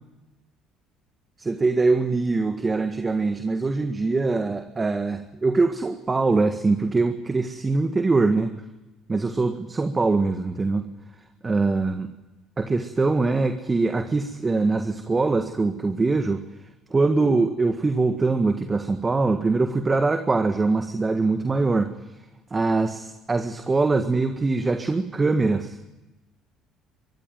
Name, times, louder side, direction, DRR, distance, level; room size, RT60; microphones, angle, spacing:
voice 1, 1.4-8.5 9.1-10.9 11.4-12.1 12.6-16.4 16.9-21.9 22.5-25.8, right 3 dB, 25° right, 7 dB, 1.6 m, -23 dB
23.0 x 14.5 x 9.4 m, 1.1 s
hypercardioid pair, 65°, 0 cm